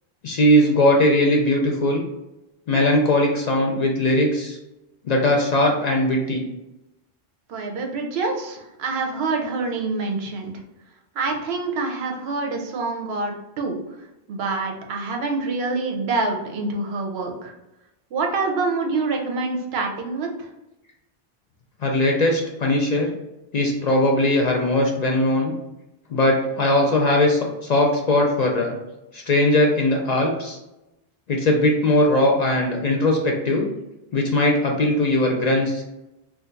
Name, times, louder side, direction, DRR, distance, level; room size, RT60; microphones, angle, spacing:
voice 1, 0.2-2.0 2.7-4.6 5.0-6.4 21.8-23.1 23.5-25.5 26.1-28.8 29.1-30.6 31.3-33.7 34.1-35.8, left 1 dB, 55° left, 0 dB, 0.5 m, -19 dB
voice 2, 7.5-10.5 11.1-13.8 14.3-17.5 18.1-20.5, right 3 dB, 85° right, 2 dB, 0.9 m, -26 dB
2.5 x 2.3 x 3.9 m, 0.95 s
omnidirectional pair, 1.0 m